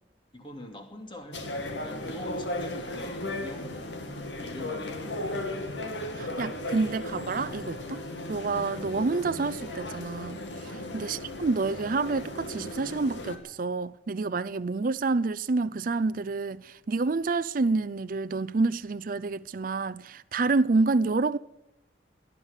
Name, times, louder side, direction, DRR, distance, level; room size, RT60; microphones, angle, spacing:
voice 1, 0.3-5.3 10.6-10.9, left 1 dB, 25° left, 2.7 m, -44 dB
sound 1, 1.3-13.4, left 1 dB, 80° left, 2.4 m, -36 dB
voice 2, 6.2-8.0 8.3-10.4 10.9-21.4, right 3 dB, 50° right, 0.5 m, -28 dB
18.5 x 11.5 x 6.5 m
head